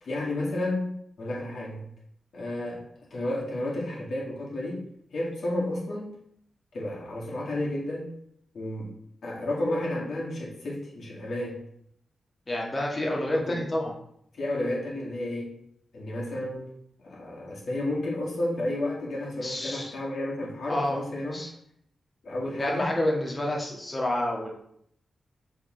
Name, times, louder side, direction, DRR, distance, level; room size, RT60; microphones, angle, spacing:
voice 1, 0.0-1.8 2.3-4.8 5.1-6.1 6.7-8.1 8.5-8.9 9.2-11.6 13.3-13.6 14.3-15.6 15.9-16.7 17.0-21.4 22.2-22.9, left 1 dB, 70° left, -4 dB, 2.1 m, -31 dB
voice 2, 12.5-13.9 19.4-19.9 20.7-21.0 21.3-21.5 22.6-24.5, left 1 dB, 30° left, -1 dB, 1.5 m, -28 dB
6.9 x 3.7 x 3.9 m, 0.70 s
wide cardioid pair, 100°, 0 cm